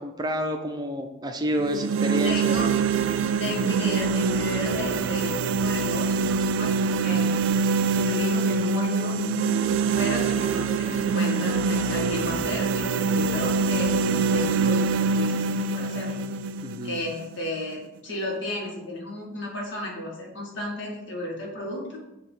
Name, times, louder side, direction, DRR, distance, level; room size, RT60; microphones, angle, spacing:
voice 1, 0.0-2.6 16.6-17.0, equal, 20° right, 5 dB, 0.5 m, -29 dB
sound 1, 1.6-17.6, right 4 dB, 85° right, 0.4 m, -24 dB
voice 2, 2.2-2.7 3.4-7.6 8.0-9.2 10.0-16.3 16.8-22.0, left 1 dB, 70° left, -3 dB, 2.0 m, -33 dB
6.9 x 3.0 x 5.5 m, 0.94 s
head